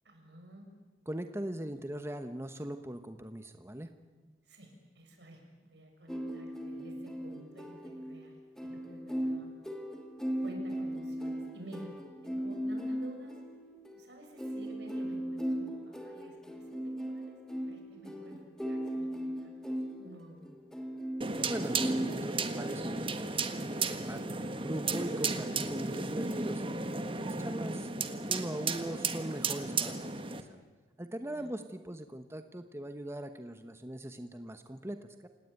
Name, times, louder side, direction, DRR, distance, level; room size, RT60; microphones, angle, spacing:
voice 1, 0.0-0.7 4.4-9.5 10.4-11.9 12.2-13.4 13.9-17.4 17.6-18.4 18.6-20.6 31.3-31.5, right 1 dB, 80° right, 2 dB, 6.9 m, -52 dB
voice 2, 1.1-3.9 4.2-4.4 21.5-26.6 27.2-27.9 28.3-30.6 31.0-35.3, right 1 dB, 15° right, 8 dB, 1.0 m, -41 dB
sound 1, 6.1-22.1, equal, 5° left, 2.4 m, -38 dB
sound 2, 21.2-30.4, right 4 dB, 30° right, 1.5 m, -34 dB
28.5 x 18.0 x 9.1 m, 1.3 s
head